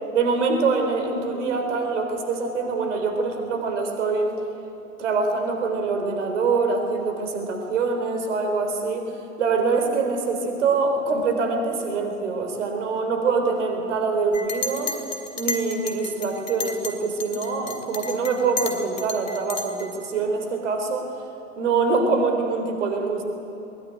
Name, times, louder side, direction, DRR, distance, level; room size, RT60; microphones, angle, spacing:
voice 1, 0.1-4.3 5.0-9.1 9.4-15.0 15.4-21.1 21.6-23.2, right 4 dB, 60° right, 5 dB, 3.9 m, -24 dB
Chink clink, 14.3-16.9 17.2-19.9, left 4 dB, 70° left, 3.1 m, -32 dB
21.5 x 20.0 x 9.2 m, 3.0 s
figure-of-eight pair, 95°, 41 cm